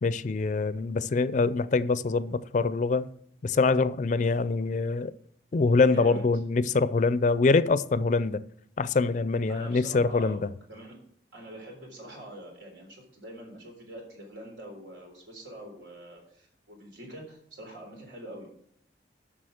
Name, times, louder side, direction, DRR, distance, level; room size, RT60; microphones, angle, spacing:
voice 1, 0.0-3.1 3.4-5.1 5.5-8.4 8.8-10.5, left 4 dB, 45° left, 0.4 m, -24 dB
voice 2, 5.9-6.3 9.5-10.4 10.7-11.0 11.3-18.5, right 1 dB, 85° right, 3.7 m, -44 dB
7.7 x 6.1 x 6.4 m
head